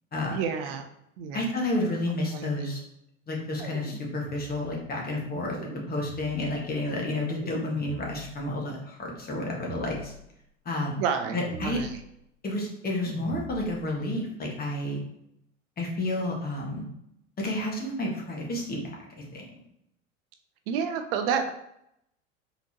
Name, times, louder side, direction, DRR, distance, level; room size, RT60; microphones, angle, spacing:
voice 1, 0.3-0.9 1.2-1.5 2.3-2.7 11.0-12.0 20.7-21.5, right 7 dB, 50° right, 7 dB, 0.5 m, -30 dB
voice 2, 1.3-2.8 3.3-5.6 5.9-10.1 10.6-10.9 11.3-11.8 12.4-15.0 15.8-16.9 17.4-19.4, left 1 dB, 25° left, -1 dB, 1.4 m, -30 dB
sound 1, 3.6-4.8 5.5-6.7 7.4-8.5 9.3-10.3 11.2-12.2 13.0-13.9, right 1 dB, 80° right, 1.2 m, -43 dB
4.1 x 3.9 x 2.9 m, 0.77 s
figure-of-eight pair, 80°, 36 cm